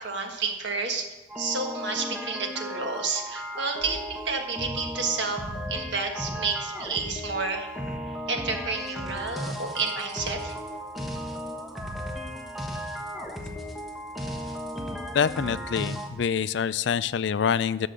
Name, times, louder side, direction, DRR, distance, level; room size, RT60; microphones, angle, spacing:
voice 1, 0.0-1.1 1.4-5.4 5.7-7.7 8.3-10.5, right 4 dB, 65° right, 3 dB, 1.5 m, -30 dB
sound 1, 1.3-16.1, equal, ahead, 1.0 m, -35 dB
voice 2, 15.1-17.9, left 7 dB, 65° left, 16 dB, 0.4 m, -26 dB
11.5 x 6.3 x 6.7 m, 1.1 s
head